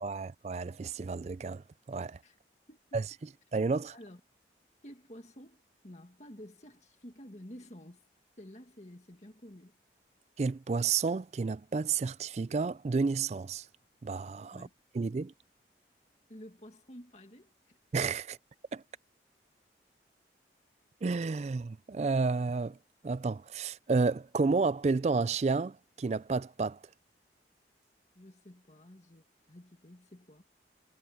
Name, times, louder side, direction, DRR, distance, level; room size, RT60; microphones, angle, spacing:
voice 1, 0.0-2.2 2.9-3.0 3.5-3.9 10.4-13.7 14.0-14.7 14.9-15.3 17.9-18.4 18.7-18.8 21.0-22.8 23.0-26.8, right 4 dB, 40° right, 0.3 m, -31 dB
voice 2, 2.7-3.0 3.9-4.2 4.8-8.0 8.4-9.8 14.5-14.7 16.3-17.8 28.2-30.4, equal, 40° left, 2.1 m, -51 dB
head